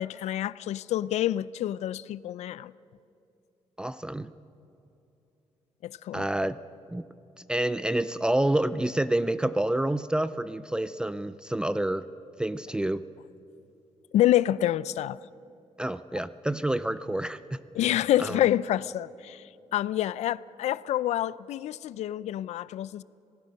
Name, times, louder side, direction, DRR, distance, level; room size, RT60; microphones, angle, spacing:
voice 1, 0.0-2.7 5.8-6.3 14.1-15.2 17.8-19.4 19.7-23.0, left 13 dB, 90° left, 0.5 m, -27 dB
voice 2, 3.8-4.3 6.1-6.6 6.9-7.1 7.5-12.1 12.4-13.0 15.8-17.6 18.2-18.4, right 1 dB, 10° right, 0.4 m, -28 dB
26.5 x 18.0 x 6.5 m
cardioid pair, 155°, 11 cm